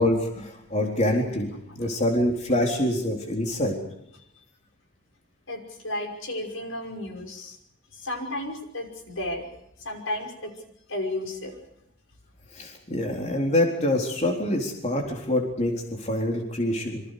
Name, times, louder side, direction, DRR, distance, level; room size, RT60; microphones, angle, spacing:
voice 1, 0.0-3.7 12.5-17.0, left 1 dB, 35° left, 1 dB, 3.9 m, -25 dB
voice 2, 5.5-7.6 7.9-9.5 9.8-10.5 10.9-11.6, left 1 dB, 80° left, 3 dB, 5.6 m, -33 dB
27.5 x 26.0 x 5.1 m, 0.77 s
head